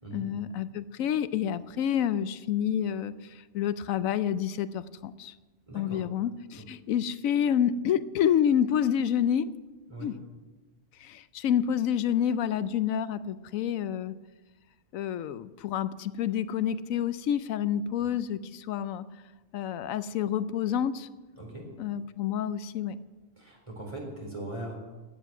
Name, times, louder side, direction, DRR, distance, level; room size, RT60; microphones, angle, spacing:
voice 1, 0.1-5.3 5.7-9.5 10.0-10.1 11.0-14.1 14.9-19.0 19.5-21.1 21.8-23.0, left 9 dB, 90° left, 14 dB, 1.0 m, -28 dB
voice 2, 5.7-6.0 6.5-6.6 9.9-10.1 21.4-21.7 23.4-24.8, right 1 dB, 25° right, 0 dB, 3.9 m, -40 dB
15.5 x 10.0 x 6.0 m, 1.2 s
omnidirectional pair, 1.4 m